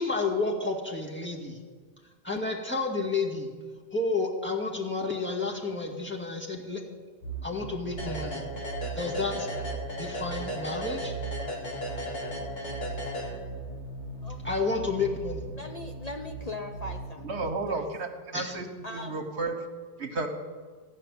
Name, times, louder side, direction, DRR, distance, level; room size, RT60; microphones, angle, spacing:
voice 1, 0.0-1.6 2.2-3.5 3.9-6.8 7.4-8.4 9.0-9.5 10.0-11.1 14.4-15.4 18.3-18.6, left 3 dB, 10° left, -3 dB, 1.9 m, -30 dB
sound 1, 7.2-17.5, right 4 dB, 85° left, 2.1 m, -39 dB
sound 2, 8.0-13.8, equal, 60° left, 2.4 m, -36 dB
voice 2, 14.2-14.6 15.5-17.9 18.8-19.2, left 2 dB, 40° left, 3 dB, 0.8 m, -40 dB
voice 3, 17.2-19.5 20.0-20.3, right 3 dB, 75° right, 5 dB, 1.5 m, -32 dB
14.5 x 5.7 x 9.7 m, 1.5 s
omnidirectional pair, 1.1 m